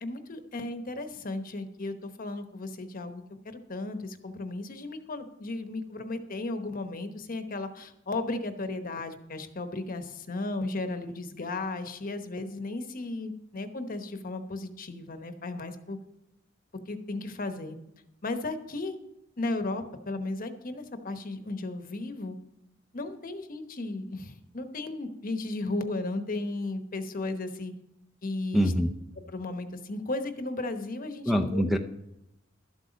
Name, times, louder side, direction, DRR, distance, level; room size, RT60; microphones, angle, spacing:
voice 1, 0.0-16.0 16.9-17.8 18.2-18.9 19.4-22.4 22.9-27.7 28.2-28.7 29.3-31.6, left 2 dB, 45° left, 8 dB, 1.0 m, -35 dB
voice 2, 28.5-28.9 31.3-31.8, equal, ahead, 5 dB, 0.6 m, -24 dB
12.5 x 7.9 x 5.2 m, 0.85 s
head